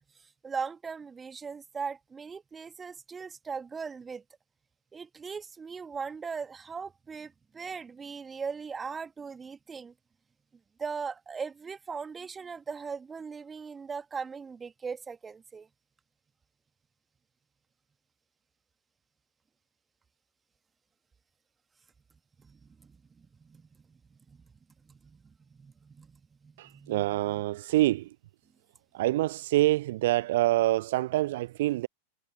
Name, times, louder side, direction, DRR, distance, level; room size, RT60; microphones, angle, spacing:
voice 1, 0.4-4.2 4.9-9.9 10.8-15.7 22.4-23.7 24.1-24.4 24.8-27.4, right 5 dB, 15° right, 1.7 m, -39 dB
voice 2, 26.6-28.1 28.9-31.9, right 16 dB, 55° right, 0.4 m, -26 dB
figure-of-eight pair, 90°, 0 cm